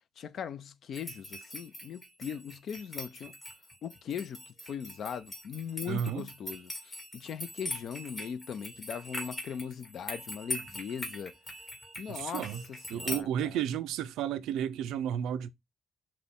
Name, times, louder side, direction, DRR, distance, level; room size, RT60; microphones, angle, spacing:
voice 1, 0.2-3.4 3.8-11.4 12.0-13.6, left 7 dB, 65° left, 0.5 m, -40 dB
sound 1, 0.9-13.2, left 1 dB, 25° left, 1.6 m, -42 dB
voice 2, 5.9-6.3 12.1-12.6 12.9-15.5, right 9 dB, 90° right, 0.4 m, -32 dB
5.9 x 2.2 x 3.5 m
cardioid pair, 90°, 0 cm